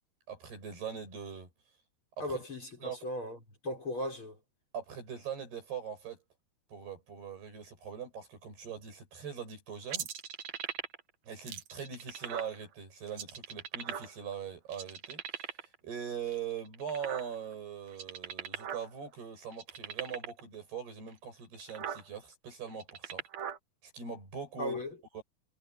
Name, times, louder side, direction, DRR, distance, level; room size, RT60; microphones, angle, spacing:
voice 1, 0.3-1.5 2.2-2.4 2.8-3.0 4.7-6.2 6.7-10.1 11.2-23.2 23.8-24.8 25.1-25.2, right 7 dB, 75° right, 10.0 m, -41 dB
voice 2, 2.2-3.4 3.6-4.3 24.6-24.9, left 1 dB, 30° left, 6.5 m, -36 dB
sound 1, 9.9-11.1 11.5-12.5 13.1-14.3 14.7-15.7 16.3-17.5 17.9-18.9 19.1-19.2 19.5-20.4 21.1-21.2 21.5-22.0 22.7-23.6, right 9 dB, 55° right, 2.1 m, -39 dB
omnidirectional pair, 4.6 m